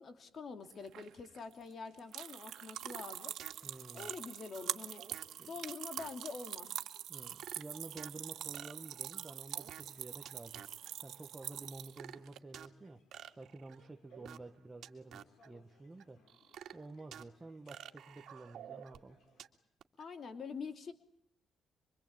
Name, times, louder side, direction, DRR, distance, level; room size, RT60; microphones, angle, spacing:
voice 1, 0.0-3.3 3.9-5.0 5.5-6.7 20.0-20.9, left 5 dB, 45° left, 9 dB, 2.8 m, -45 dB
sound 1, 0.7-12.4, right 11 dB, 85° right, 1.7 m, -44 dB
sound 2, 1.6-19.5, left 4 dB, 65° left, 5.6 m, -70 dB
sound 3, 2.6-3.5 4.0-5.4 5.7-6.3 6.8-6.9 7.1-8.1 8.5-10.0 10.3-10.9 11.4-12.7 13.1-14.6 14.8-15.5 16.0-17.3 17.7-19.5 19.8-20.0, right 10 dB, 65° right, 2.2 m, -51 dB
voice 2, 3.6-4.1 5.4-5.5 7.1-10.6 11.0-13.0 13.4-16.2 16.7-19.2, right 2 dB, 15° right, 4 dB, 1.2 m, -51 dB
25.0 x 25.0 x 8.9 m, 0.70 s
cardioid pair, 160°, 0 cm